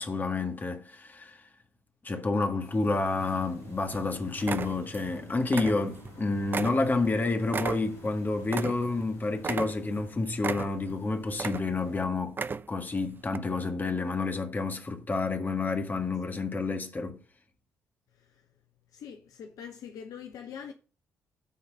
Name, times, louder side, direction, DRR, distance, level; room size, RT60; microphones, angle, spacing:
voice 1, 0.0-1.4 2.0-12.4 12.7-17.2, left 3 dB, 25° left, 1.6 m, -29 dB
sound 1, 2.6-12.0, left 1 dB, 85° left, 4.3 m, -49 dB
sound 2, 2.9-3.5 3.9-4.1 4.4-5.1 5.4-6.2 6.5-9.1 9.4-10.0 10.4-11.0 11.3-11.9 12.3-12.9 13.3-13.4, right 5 dB, 30° right, 0.5 m, -34 dB
voice 2, 18.9-20.7, left 7 dB, 55° left, 0.8 m, -43 dB
9.6 x 3.9 x 6.2 m
figure-of-eight pair, 45°, 7 cm